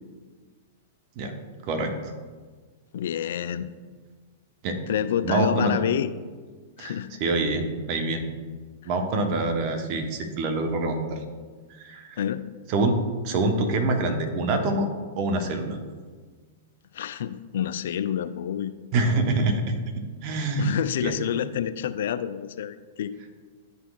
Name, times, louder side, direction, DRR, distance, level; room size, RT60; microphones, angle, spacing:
voice 1, 2.9-3.7 4.9-6.1 6.8-7.1 12.2-12.4 16.9-18.7 20.6-23.1, left 9 dB, 60° left, 12 dB, 0.3 m, -28 dB
voice 2, 5.2-5.7 6.8-8.2 8.8-11.2 11.8-12.2 12.7-13.0 13.2-14.9 15.2-15.8 18.9-19.7 20.2-20.7 21.0-21.2, right 2 dB, 45° right, 4 dB, 1.0 m, -25 dB
11.0 x 4.1 x 2.4 m, 1.5 s
figure-of-eight pair, 100°, 0 cm